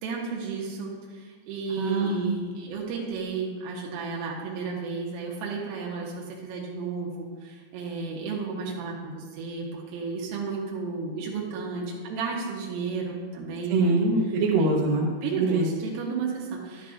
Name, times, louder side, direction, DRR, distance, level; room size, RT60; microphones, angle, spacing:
voice 1, 0.0-14.0 14.6-14.7 15.2-16.9, right 4 dB, 90° right, -3 dB, 3.8 m, -33 dB
voice 2, 1.7-2.5 13.7-15.1 15.4-15.7, right 3 dB, 75° right, -3 dB, 2.2 m, -24 dB
11.0 x 9.6 x 2.5 m, 1.5 s
omnidirectional pair, 5.7 m